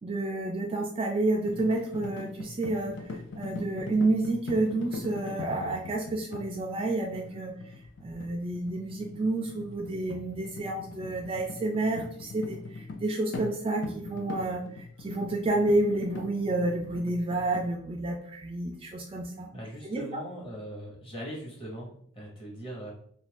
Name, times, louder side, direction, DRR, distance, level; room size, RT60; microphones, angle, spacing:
voice 1, 0.0-3.0 3.4-7.5 8.0-19.5 19.8-20.0, right 2 dB, 25° right, 1 dB, 0.3 m, -30 dB
sound 1, 1.5-13.1 13.3-13.6 13.8-17.7, left 3 dB, 60° left, 0.4 m, -41 dB
voice 2, 19.5-22.9, right 1 dB, 25° left, -2 dB, 0.9 m, -40 dB
2.6 x 2.5 x 3.3 m, 0.63 s
head